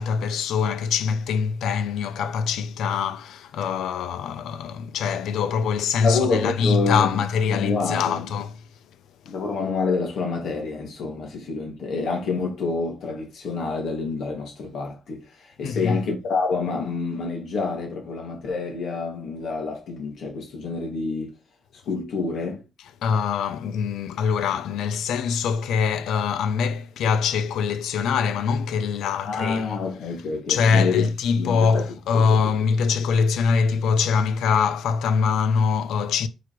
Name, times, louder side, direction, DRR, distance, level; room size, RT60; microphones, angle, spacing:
voice 1, 0.0-8.6 9.3-9.4 15.6-16.0 23.0-29.8 30.5-36.3, left 6 dB, 85° left, 0.9 m, -23 dB
voice 2, 6.0-7.2 7.5-8.3 9.2-21.3 21.9-22.6 29.2-31.1 31.4-31.8 32.1-32.3, left 4 dB, 65° left, 3.0 m, -27 dB
9.4 x 4.4 x 4.6 m
cardioid pair, 145°, 0 cm